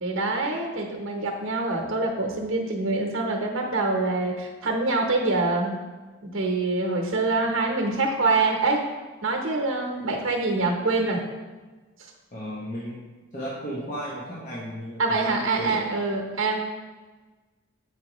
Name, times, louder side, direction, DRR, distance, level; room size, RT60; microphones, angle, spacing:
voice 1, 0.0-5.7 6.2-8.8 9.2-11.2 15.0-16.6, right 3 dB, 80° right, 1 dB, 0.8 m, -25 dB
voice 2, 12.3-15.9, equal, 40° left, -6 dB, 0.9 m, -35 dB
8.2 x 4.8 x 3.0 m, 1.3 s
head